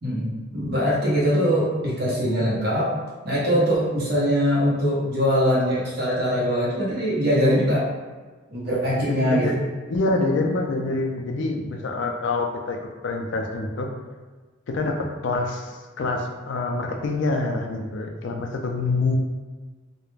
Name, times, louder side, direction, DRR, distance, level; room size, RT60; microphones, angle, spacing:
voice 1, 0.0-2.9 3.2-7.9 8.5-9.6, equal, 50° right, -7 dB, 0.9 m, -22 dB
voice 2, 9.0-9.6 9.9-12.8 13.0-13.9 14.7-19.2, left 3 dB, 60° left, 2 dB, 0.3 m, -26 dB
2.3 x 2.1 x 3.1 m, 1.3 s
head